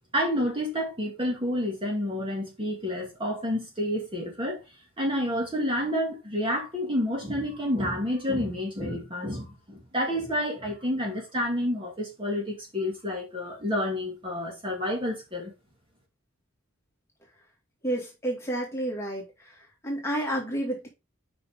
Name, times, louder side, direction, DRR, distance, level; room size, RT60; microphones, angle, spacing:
voice 1, 0.1-4.6 5.0-15.5, left 1 dB, 25° right, 2.2 m, -29 dB
voice 2, 17.8-19.6 19.8-20.9, right 1 dB, 10° left, 2.3 m, -30 dB
7.8 x 5.3 x 3.7 m
head